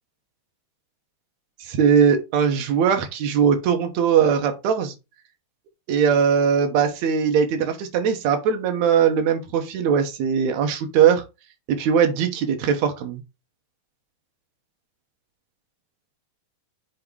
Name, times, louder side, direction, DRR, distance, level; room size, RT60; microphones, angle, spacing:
voice 1, 1.6-4.9 5.9-11.2 11.7-13.2, right 7 dB, 65° right, 2.3 m, -20 dB
7.5 x 2.9 x 4.8 m
omnidirectional pair, 3.6 m